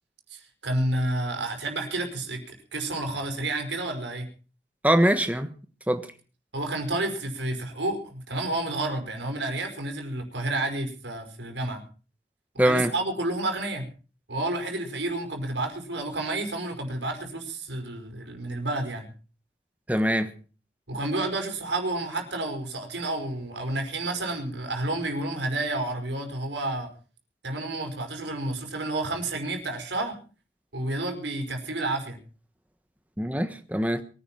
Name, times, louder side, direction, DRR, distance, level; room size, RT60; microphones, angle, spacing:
voice 1, 0.3-4.3 6.5-11.8 12.5-13.9 14.3-19.1 20.9-26.9 27.4-30.2 30.7-32.2, right 2 dB, 80° right, 5.1 m, -30 dB
voice 2, 4.8-5.5 5.9-6.1 12.6-12.9 19.9-20.3 33.2-34.0, right 1 dB, 10° right, 1.4 m, -23 dB
23.0 x 10.5 x 5.9 m
head